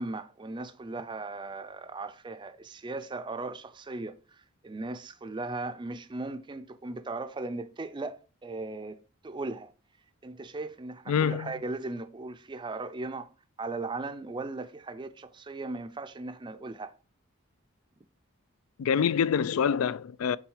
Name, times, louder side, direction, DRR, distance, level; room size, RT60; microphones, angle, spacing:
voice 1, 0.0-9.0 9.2-9.7 10.2-13.3 13.6-16.9, right 3 dB, 20° right, 0.4 m, -37 dB
voice 2, 11.1-11.5 18.8-20.4, left 7 dB, 90° left, 0.4 m, -26 dB
6.2 x 3.8 x 4.8 m
head